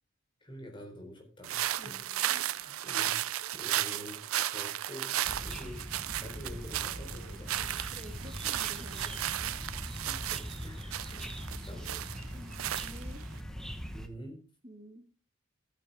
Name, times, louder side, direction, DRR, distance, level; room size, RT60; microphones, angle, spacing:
voice 1, 0.4-2.0 2.5-3.2 3.5-5.8 6.2-7.9 10.0-12.1 13.9-14.4, equal, 25° left, 2 dB, 3.9 m, -47 dB
sound 1, 1.4-13.4, right 12 dB, 90° right, 0.5 m, -35 dB
voice 2, 1.8-2.5 7.9-9.5 12.3-13.3 14.6-15.1, equal, 30° right, 4 dB, 1.6 m, -51 dB
sound 2, 5.2-14.1, equal, ahead, 1.1 m, -42 dB
13.5 x 9.3 x 3.6 m, 0.35 s
head